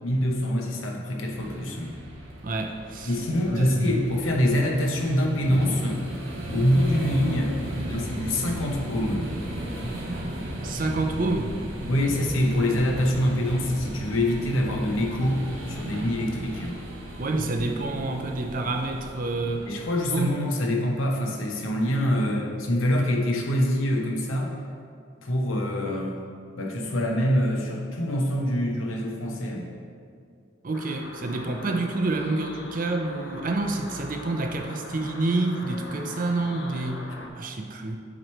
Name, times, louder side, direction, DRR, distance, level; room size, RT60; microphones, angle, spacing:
voice 1, 0.0-2.0 3.1-6.1 6.5-9.3 11.9-16.8 19.7-24.5 25.2-26.2 26.6-29.7, left 1 dB, 85° left, 1 dB, 0.8 m, -25 dB
sound 1, 1.3-20.3, right 1 dB, 80° right, 0.9 m, -35 dB
voice 2, 2.4-3.2 3.6-4.0 10.6-11.5 17.2-19.7 20.1-20.3 30.6-38.0, right 2 dB, 40° right, 4 dB, 0.5 m, -28 dB
sound 2, 30.7-37.3, left 1 dB, 60° left, 0.5 m, -41 dB
7.7 x 3.1 x 4.3 m, 2.3 s
head